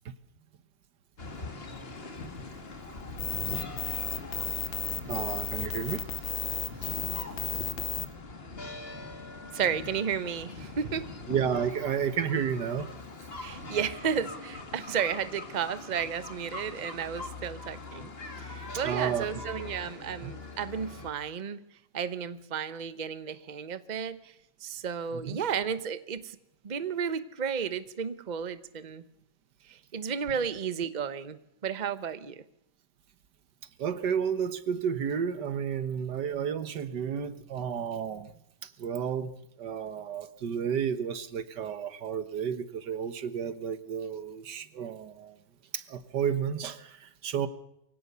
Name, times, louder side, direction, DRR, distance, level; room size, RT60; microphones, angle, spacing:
sound 1, 1.2-21.1, left 3 dB, 35° left, 2.3 m, -42 dB
sound 2, 3.2-8.1, left 8 dB, 65° left, 1.4 m, -33 dB
voice 1, 5.1-7.0 7.3-7.4 11.3-12.9 18.8-19.3 19.6-19.7 20.2-20.3 25.1-25.4 33.8-38.3 38.6-39.3 39.6-45.4 45.7-47.5, right 7 dB, 90° right, 13 dB, 1.9 m, -32 dB
voice 2, 9.5-11.1 13.4-18.1 18.4-21.6 21.9-24.2 24.6-26.4 26.6-29.0 29.9-32.4, right 7 dB, 30° right, 13 dB, 0.9 m, -33 dB
23.5 x 17.0 x 6.8 m, 0.77 s
omnidirectional pair, 1.8 m